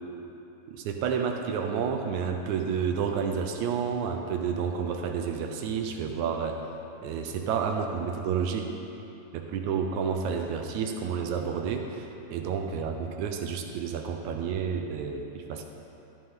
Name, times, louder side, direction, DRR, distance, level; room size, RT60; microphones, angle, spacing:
voice 1, 0.7-6.6 7.0-8.7 9.3-15.7, right 6 dB, 75° right, 4 dB, 1.9 m, -30 dB
13.5 x 10.5 x 3.7 m, 2.9 s
omnidirectional pair, 3.5 m